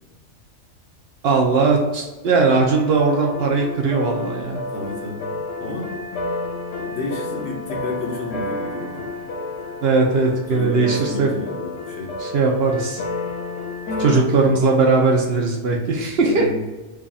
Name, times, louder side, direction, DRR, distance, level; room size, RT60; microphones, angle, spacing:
voice 1, 1.2-4.6 9.8-11.3 12.2-13.0 14.0-16.5, right 4 dB, 65° right, 1 dB, 0.7 m, -19 dB
sound 1, 2.7-14.2, left 2 dB, 90° left, 1.0 m, -31 dB
voice 2, 4.7-5.9 6.9-9.1 10.5-12.1 13.9-14.5 16.2-16.6, left 2 dB, 60° left, -1 dB, 1.0 m, -31 dB
3.2 x 2.4 x 3.9 m, 1.1 s
omnidirectional pair, 1.3 m